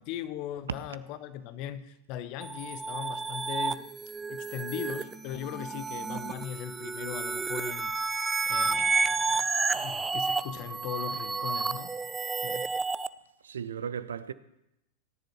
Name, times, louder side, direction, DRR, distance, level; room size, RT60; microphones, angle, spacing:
voice 1, 0.0-3.9 4.3-7.9 8.5-11.9 12.4-12.6, left 11 dB, 40° left, 0.8 m, -39 dB
sound 1, 2.4-13.1, right 4 dB, 15° right, 0.4 m, -31 dB
voice 2, 13.4-14.3, right 7 dB, 65° right, 0.5 m, -36 dB
18.5 x 10.5 x 3.1 m
figure-of-eight pair, 90°, 0 cm